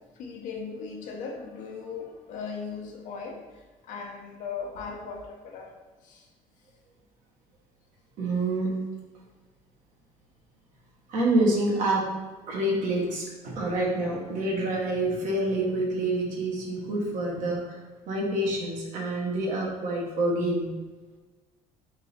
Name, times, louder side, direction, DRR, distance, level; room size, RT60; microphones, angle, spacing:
voice 1, 0.2-5.7 6.0-6.3, left 5 dB, 70° left, 0 dB, 0.9 m, -38 dB
voice 2, 8.2-8.8 11.1-12.1 12.5-17.8 18.1-20.7, right 1 dB, 70° right, -2 dB, 1.3 m, -27 dB
3.8 x 2.7 x 4.3 m, 1.3 s
supercardioid pair, 90°, 14 cm